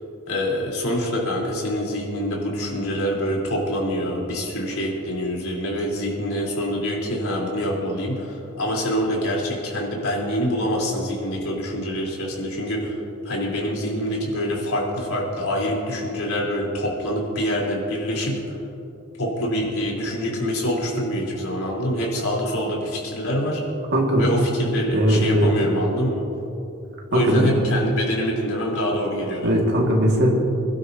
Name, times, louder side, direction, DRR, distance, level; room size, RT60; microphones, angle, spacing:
voice 1, 0.3-18.6 19.2-23.6 24.2-26.2 27.1-29.6, equal, 75° left, -3 dB, 3.9 m, -25 dB
voice 2, 23.9-24.3 24.9-25.5 27.1-27.5 29.4-30.3, equal, 50° right, -1 dB, 2.1 m, -19 dB
26.5 x 12.0 x 2.9 m, 2.9 s
head